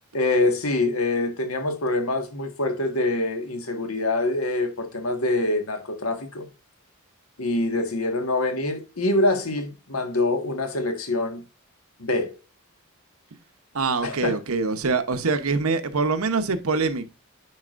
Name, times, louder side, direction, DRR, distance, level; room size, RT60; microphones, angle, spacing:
voice 1, 0.1-6.5 7.4-11.4 12.0-12.3 14.0-14.4, left 2 dB, 80° left, 1.6 m, -25 dB
voice 2, 13.7-17.1, right 4 dB, 80° right, 0.9 m, -24 dB
9.5 x 4.8 x 2.5 m
head